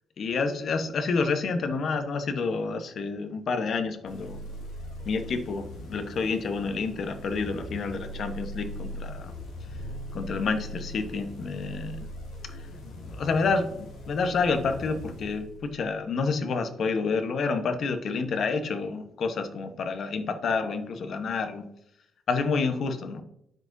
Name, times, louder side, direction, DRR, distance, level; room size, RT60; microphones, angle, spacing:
voice 1, 0.2-4.4 5.0-9.3 10.1-12.1 13.1-21.6 22.3-23.2, left 4 dB, 60° left, 8 dB, 1.0 m, -29 dB
sound 1, 4.0-16.0, equal, 85° left, 2.3 m, -40 dB
12.0 x 5.1 x 2.7 m, 0.77 s
cardioid pair, 90°, 0 cm